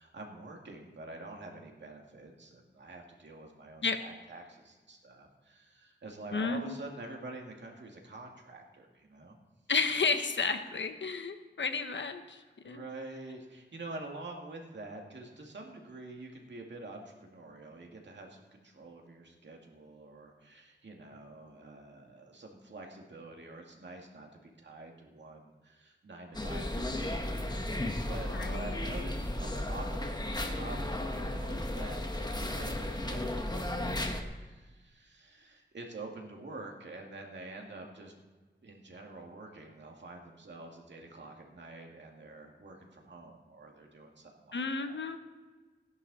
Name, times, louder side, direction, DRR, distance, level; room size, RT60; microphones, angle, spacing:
voice 1, 0.0-9.4 12.6-38.1 38.6-45.0, right 2 dB, 75° right, 1 dB, 2.3 m, -47 dB
voice 2, 6.3-6.8 9.7-12.8 28.3-28.8 44.5-45.2, left 4 dB, 85° left, 7 dB, 1.1 m, -32 dB
sound 1, 26.3-34.2, left 1 dB, 20° left, 1.2 m, -34 dB
16.0 x 11.0 x 4.2 m, 1.3 s
wide cardioid pair, 90°, 19 cm